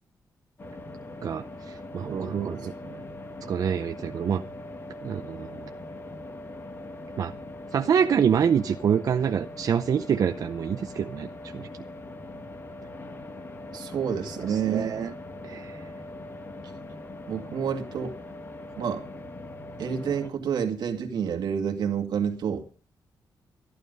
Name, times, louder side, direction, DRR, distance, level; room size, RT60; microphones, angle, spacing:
sound 1, 0.6-20.3, left 2 dB, 30° left, 1.4 m, -41 dB
voice 1, 1.2-2.7 3.5-4.4 5.0-5.7 7.2-7.3 7.7-11.3 11.5-11.7 14.4-15.1 15.4-15.9, right 7 dB, 55° right, 0.6 m, -26 dB
voice 2, 2.1-3.0 13.7-14.9 17.3-18.2 18.8-19.1 19.8-22.6, right 7 dB, 75° right, 2.2 m, -29 dB
14.0 x 12.0 x 5.3 m
wide cardioid pair, 155°, 7 cm